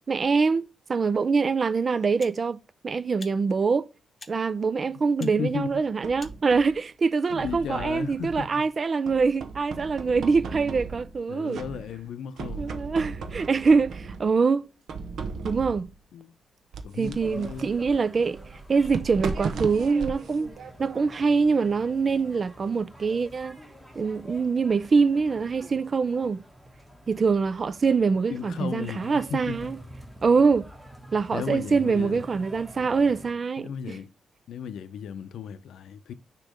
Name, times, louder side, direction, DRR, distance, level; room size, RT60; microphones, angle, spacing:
voice 1, 0.1-0.6 0.9-2.6 2.8-3.8 4.3-11.6 12.6-14.6 15.4-15.9 16.9-18.4 18.7-20.5 20.8-23.6 24.0-26.4 27.1-29.8 30.2-30.7 31.1-34.0, right 4 dB, 45° right, 0.4 m, -24 dB
sound 1, 2.2-2.4 3.2-3.4 4.2-4.4 5.2-5.4 6.2-6.4, left 3 dB, 30° left, 0.9 m, -46 dB
voice 2, 5.2-5.7 7.3-8.6 11.3-12.7 16.1-16.3 16.8-17.7 28.3-29.7 31.3-32.2 33.6-34.1 34.5-36.1, left 7 dB, 80° left, 0.6 m, -35 dB
sound 2, 5.5-6.8 7.3-8.6 9.1-11.2 11.5-12.1 12.4-14.3 14.9-16.0 16.7-21.2, right 5 dB, 75° right, 0.9 m, -37 dB
sound 3, 17.2-33.3, equal, 5° right, 1.5 m, -47 dB
6.4 x 3.0 x 4.8 m
cardioid pair, 80°, 0 cm